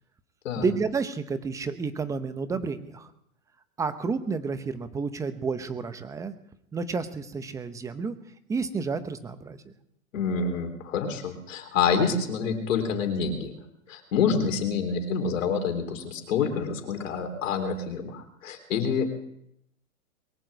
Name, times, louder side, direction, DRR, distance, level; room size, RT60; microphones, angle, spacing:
voice 1, 0.6-3.1 3.8-6.3 6.7-8.2 8.5-9.7, right 4 dB, 10° right, 12 dB, 0.7 m, -30 dB
voice 2, 10.1-13.5 13.9-19.1, left 6 dB, 65° left, 6 dB, 3.9 m, -27 dB
22.0 x 7.5 x 8.1 m, 0.76 s
hypercardioid pair, 135°, 42 cm